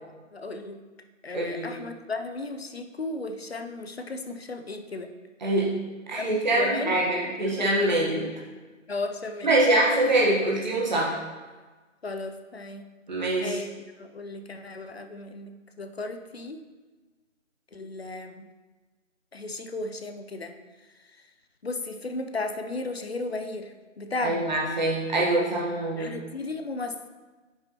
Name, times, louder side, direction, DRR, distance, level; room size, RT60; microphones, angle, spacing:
voice 1, 0.3-0.8 1.2-5.1 6.2-7.9 8.9-9.5 12.0-12.9 13.4-16.6 17.7-18.5 19.3-20.5 21.6-24.5 26.0-27.1, left 2 dB, 50° left, 7 dB, 0.7 m, -35 dB
voice 2, 1.3-1.7 5.4-5.8 6.1-8.3 9.4-11.2 13.1-13.6 24.2-26.1, right 1 dB, 35° right, -4 dB, 1.3 m, -24 dB
10.0 x 5.6 x 3.0 m, 1.3 s
figure-of-eight pair, 170°, 39 cm